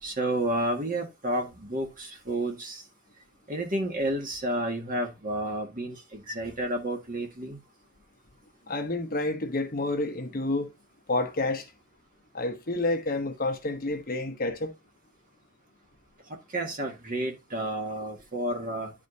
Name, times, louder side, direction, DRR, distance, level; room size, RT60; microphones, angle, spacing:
voice 1, 0.0-2.8 3.5-7.6 16.3-18.9, right 1 dB, 40° right, 1.7 m, -31 dB
voice 2, 8.7-10.7 11.1-11.7 12.3-14.7, left 2 dB, 40° left, 0.9 m, -29 dB
11.0 x 4.9 x 2.7 m
head